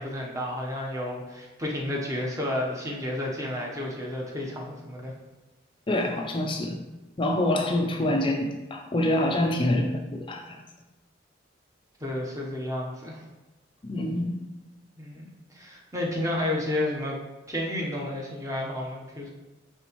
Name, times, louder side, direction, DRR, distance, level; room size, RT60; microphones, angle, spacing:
voice 1, 0.0-5.1 12.0-13.2 15.0-15.3 15.5-17.2 17.5-19.3, left 1 dB, 15° right, -2 dB, 0.9 m, -31 dB
voice 2, 5.9-6.8 7.2-10.6 13.8-14.3, left 1 dB, 25° left, 3 dB, 0.4 m, -26 dB
9.3 x 3.4 x 3.0 m, 1.1 s
head